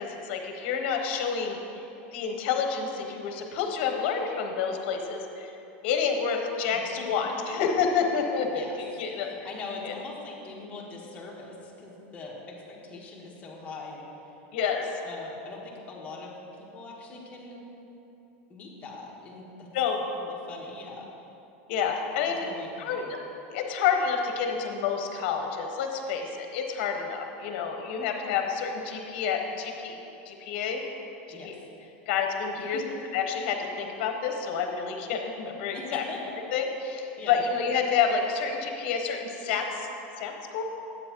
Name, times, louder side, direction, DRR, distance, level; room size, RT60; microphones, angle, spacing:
voice 1, 0.0-1.6 2.1-5.5 5.8-8.6 9.0-9.3 9.8-9.9 14.5-14.8 19.7-20.0 21.7-22.4 22.8-23.1 23.5-30.0 30.3-30.8 31.3-31.5 32.1-32.8 33.1-36.0 36.5-39.9 40.2-40.6, left 6 dB, 60° left, 3 dB, 1.0 m, -29 dB
voice 2, 6.7-7.1 7.5-7.6 8.5-8.8 9.1-14.3 15.0-17.6 18.5-19.7 20.1-21.1 22.2-23.1 31.3-31.5 31.8-31.9 32.6-33.0 35.7-36.2 37.2-37.5, left 3 dB, 20° left, -3 dB, 1.3 m, -42 dB
9.4 x 8.2 x 3.0 m, 2.9 s
supercardioid pair, 150°, 6 cm